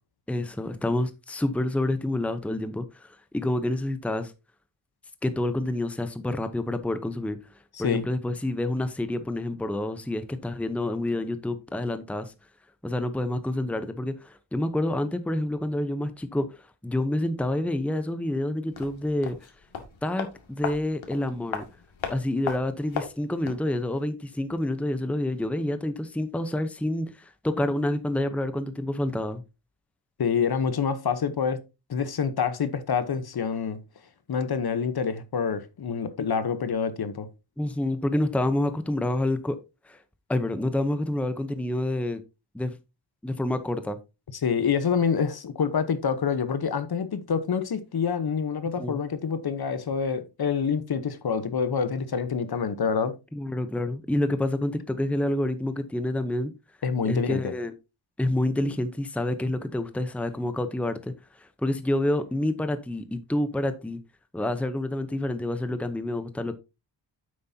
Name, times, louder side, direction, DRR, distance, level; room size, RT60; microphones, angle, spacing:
voice 1, 0.3-4.3 5.2-7.4 7.8-12.3 12.8-19.4 20.0-21.6 22.1-29.4 37.6-39.6 39.9-40.0 40.3-42.2 42.5-42.8 43.2-44.0 48.8-49.0 53.3-56.5 57.0-57.7 58.2-61.1 61.4-64.0 64.3-66.6, left 1 dB, 5° left, 0.8 m, -28 dB
sound 1, 18.7-23.7 24.0-24.1, left 6 dB, 80° left, 2.3 m, -37 dB
voice 2, 30.2-31.6 31.9-33.8 34.3-37.3 44.4-53.1 56.8-57.5, left 6 dB, 55° left, 1.1 m, -27 dB
9.5 x 7.8 x 2.8 m
wide cardioid pair, 125°, 46 cm